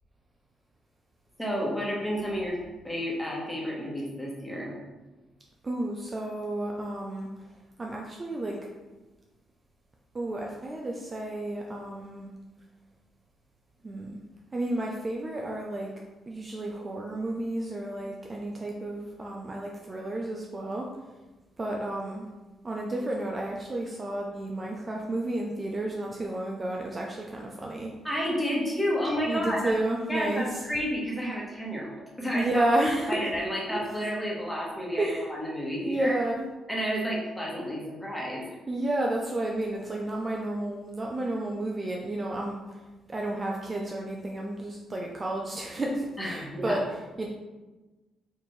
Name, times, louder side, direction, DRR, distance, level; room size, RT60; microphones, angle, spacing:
voice 1, 1.4-2.6 2.8-4.8 28.0-29.7 30.1-32.6 33.1-36.2 36.7-38.4 46.2-46.8, equal, 5° left, -4 dB, 1.2 m, -31 dB
voice 2, 5.6-7.5 7.8-8.7 10.1-12.3 13.8-14.2 14.5-15.9 16.3-21.1 21.6-22.3 22.6-27.9 29.3-30.6 32.3-33.2 33.7-33.8 35.0-35.3 35.8-36.5 38.7-47.3, right 1 dB, 25° right, -1 dB, 0.4 m, -31 dB
4.4 x 2.6 x 3.1 m, 1.2 s
cardioid pair, 90°, 0 cm